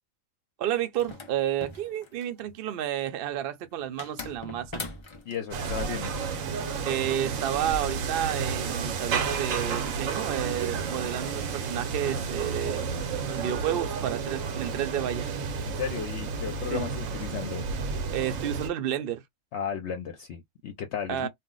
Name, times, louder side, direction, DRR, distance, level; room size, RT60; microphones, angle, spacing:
voice 1, 0.6-4.8 6.8-12.8 13.3-15.3 16.7-16.9 18.1-19.2 21.1-21.3, right 11 dB, 60° right, 0.6 m, -31 dB
sound 1, 1.0-2.4 4.0-5.4, left 3 dB, 40° left, 0.4 m, -40 dB
voice 2, 5.3-6.1 15.6-17.7 19.5-21.3, left 7 dB, 65° left, 0.9 m, -34 dB
sound 2, 5.5-18.7, right 5 dB, 85° right, 1.1 m, -31 dB
2.5 x 2.0 x 3.7 m
omnidirectional pair, 1.3 m